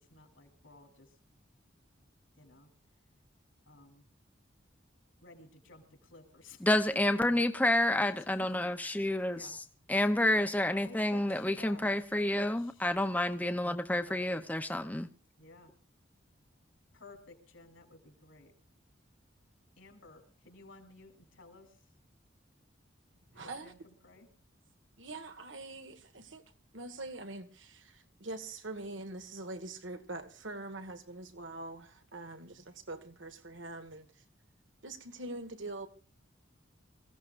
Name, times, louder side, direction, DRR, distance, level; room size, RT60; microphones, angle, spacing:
voice 1, 0.1-1.1 2.4-2.7 3.7-4.0 5.2-6.6 8.0-8.7 9.3-9.6 10.7-12.0 12.4-12.9 14.0-14.5 15.4-15.7 16.9-18.5 19.8-21.7 23.3-24.3, left 2 dB, 85° left, 3.8 m, -55 dB
voice 2, 6.6-9.6 9.9-15.1, left 1 dB, 10° left, 0.7 m, -29 dB
voice 3, 23.3-23.7 25.0-26.4 26.7-34.2 34.8-35.9, right 2 dB, 75° right, 1.7 m, -44 dB
26.0 x 16.0 x 2.5 m
head